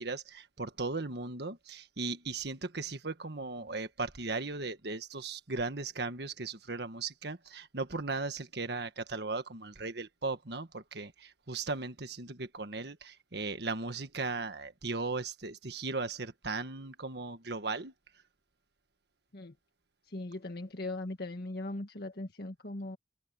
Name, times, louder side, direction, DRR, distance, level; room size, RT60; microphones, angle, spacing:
voice 1, 0.0-17.9, right 3 dB, 65° right, 1.6 m, -37 dB
voice 2, 20.1-23.0, left 2 dB, 60° left, 1.7 m, -39 dB
head